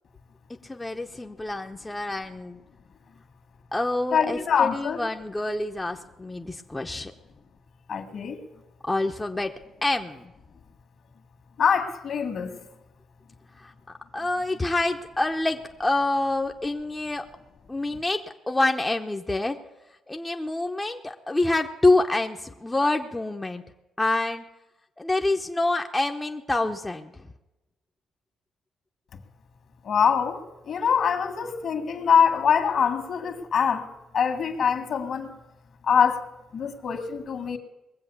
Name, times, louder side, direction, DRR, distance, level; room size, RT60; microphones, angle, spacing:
voice 1, 0.6-2.6 3.7-7.1 8.8-9.5 9.8-10.3 13.6-13.7 14.1-17.3 17.7-19.6 20.1-23.6 24.0-24.4 25.0-27.3, left 2 dB, 15° left, 3 dB, 0.8 m, -26 dB
voice 2, 4.1-5.0 7.9-8.4 11.6-12.6 29.8-30.4 30.7-33.9 34.1-35.3 35.9-36.2 36.5-37.6, left 7 dB, 60° left, 8 dB, 1.9 m, -24 dB
20.5 x 7.7 x 7.1 m, 1.0 s
cardioid pair, 90°, 0 cm